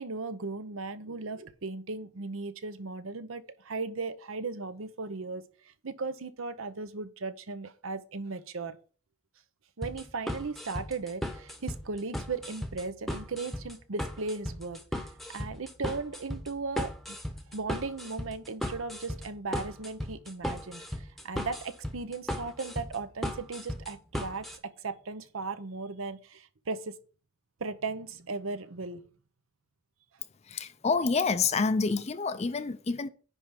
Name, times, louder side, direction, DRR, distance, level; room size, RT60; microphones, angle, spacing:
voice 1, 0.0-8.8 9.8-15.0 15.3-17.2 17.5-24.5 24.8-27.0 27.6-29.0, right 3 dB, 75° right, 0.8 m, -37 dB
sound 1, 9.8-24.6, equal, ahead, 0.9 m, -36 dB
voice 2, 30.5-33.1, left 4 dB, 30° left, 0.4 m, -28 dB
10.0 x 3.4 x 5.8 m
head